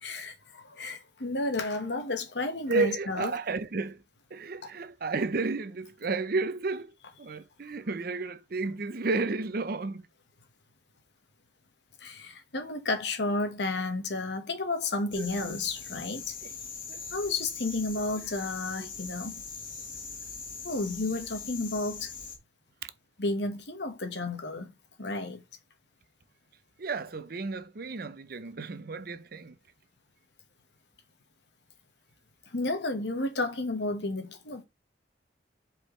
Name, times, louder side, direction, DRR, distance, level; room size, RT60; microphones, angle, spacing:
voice 1, 0.0-3.3 4.6-4.7 12.0-16.3 17.1-19.3 20.6-22.1 23.2-24.7 25.0-25.4 32.5-34.6, left 2 dB, 75° left, 1.4 m, -32 dB
voice 2, 2.7-4.0 4.3-6.9 7.2-10.0 15.2-15.5 16.9-17.0 18.8-18.9 22.8-22.9 26.8-29.6, right 3 dB, 55° right, 0.7 m, -32 dB
sound 1, 15.1-22.4, left 5 dB, 50° left, 1.6 m, -41 dB
8.0 x 4.7 x 3.2 m
head